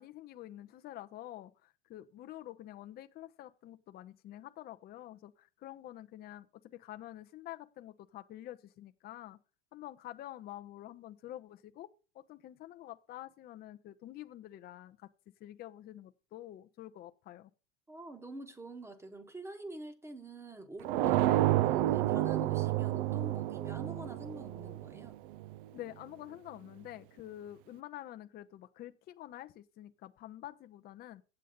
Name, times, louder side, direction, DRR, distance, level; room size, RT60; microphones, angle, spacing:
voice 1, 0.0-9.4 9.7-11.9 12.1-15.1 15.4-17.5 21.2-21.5 25.7-31.2, left 13 dB, 25° left, 0.7 m, -48 dB
voice 2, 17.9-25.2, right 2 dB, 5° right, 1.2 m, -46 dB
sound 1, 20.8-25.6, right 14 dB, 50° right, 0.5 m, -30 dB
7.9 x 7.5 x 5.2 m
hypercardioid pair, 120°, 36 cm